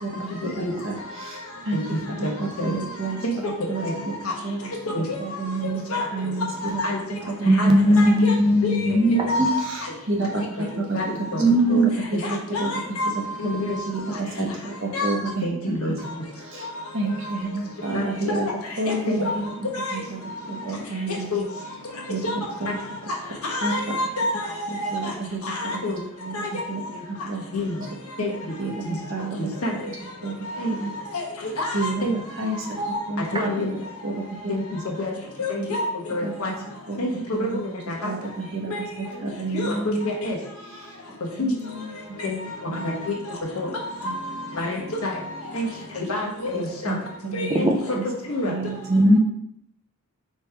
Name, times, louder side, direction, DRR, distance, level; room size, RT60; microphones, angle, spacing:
voice 1, 0.0-1.8 2.1-3.2 3.4-4.1 4.4-4.7 5.0-6.8 7.1-7.5 9.6-11.0 11.3-11.4 11.7-12.7 13.1-13.2 13.9-15.9 16.4-16.7 16.9-18.5 18.8-19.5 19.9-20.2 20.5-21.3 22.1-22.2 22.6-22.7 23.6-23.9 24.7-25.4 25.7-25.8 26.2-26.4 26.7-26.8 27.1-27.7 28.6-29.5 30.2-30.3 30.7-30.9 31.7-32.1 32.4-32.8 33.1-33.7 34.0-34.5 35.6-35.7 36.2-36.3 36.9-37.0 37.3-37.6 38.0-40.1 40.8-41.0 41.4-41.9 42.2-43.0 44.0-44.2 46.8-47.0 47.2-47.5 47.9-48.0 48.4-49.1, right 2 dB, 60° right, -1 dB, 0.9 m, -30 dB
voice 2, 7.4-9.5 11.4-11.9 33.3-33.5 47.5-48.0 48.9-49.2, equal, 20° right, 2 dB, 0.5 m, -18 dB
voice 3, 9.3-9.6 10.9-11.0 11.3-11.4 12.5-13.1 13.4-13.8 14.9-15.1 15.4-15.9 17.9-18.4 19.1-19.2 19.7-19.9 21.3-21.4 22.2-22.3 23.5-24.5 24.7-25.0 25.5-26.0 26.3-26.5 27.5-27.7 28.2-28.3 28.8-28.9 29.6-29.7 30.6-30.7 31.1-31.2 31.6-32.1 32.8-33.0 33.3-33.7 34.5-34.6 35.0-35.1 35.4-36.5 37.0-37.1 37.4-37.6 38.0-38.1 38.7-38.8 39.5-40.4 41.4-41.5 42.2-42.3 42.8-42.9 44.0-44.1 44.6-45.1 45.5-45.7 46.1-46.9 47.3-47.7 48.3-48.5, left 1 dB, 80° left, -1 dB, 1.1 m, -27 dB
3.4 x 3.2 x 4.5 m, 0.74 s
head